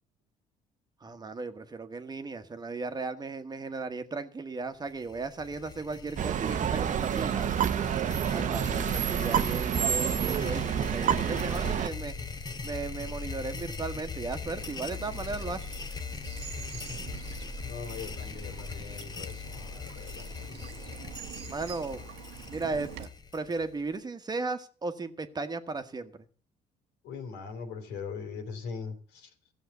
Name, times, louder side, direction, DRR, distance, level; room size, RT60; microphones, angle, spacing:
voice 1, 1.0-7.7 8.3-12.1 12.6-15.6 21.5-22.0 22.5-26.1, right 3 dB, 25° right, 8 dB, 1.2 m, -36 dB
sound 1, 4.9-23.9, left 5 dB, 25° left, 0.8 m, -40 dB
sound 2, 6.2-11.9, right 9 dB, 50° right, 0.8 m, -28 dB
voice 2, 8.5-8.9 16.9-20.9 27.0-29.3, left 5 dB, 90° left, 5 dB, 3.2 m, -41 dB
Bird vocalization bird call bird song / Stream, 14.4-23.1, right 10 dB, 90° right, 1.2 m, -47 dB
14.5 x 7.3 x 8.1 m, 0.42 s
cardioid pair, 110°, 17 cm